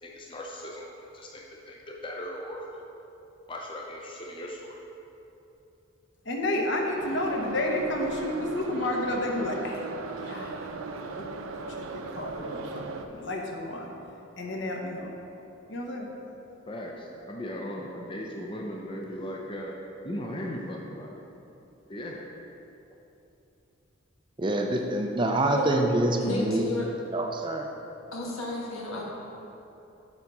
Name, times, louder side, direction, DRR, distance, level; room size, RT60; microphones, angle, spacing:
voice 1, 0.0-0.9 1.1-2.7 3.5-4.8 16.7-19.8 20.0-21.2 21.9-22.2, equal, 25° left, -1 dB, 0.5 m, -38 dB
voice 2, 6.3-9.8 10.2-10.6 11.1-11.3 11.6-11.7 11.9-13.9 14.4-15.1 15.7-16.1, left 1 dB, 60° left, 1 dB, 0.9 m, -31 dB
Subway metro underground, 7.0-13.1, right 3 dB, 80° right, 0.5 m, -37 dB
voice 3, 24.4-26.7 27.1-27.7, right 1 dB, 25° right, 3 dB, 0.4 m, -26 dB
voice 4, 26.2-26.9 28.1-29.0, left 2 dB, 85° left, -3 dB, 1.5 m, -33 dB
7.2 x 4.8 x 5.3 m, 2.9 s
head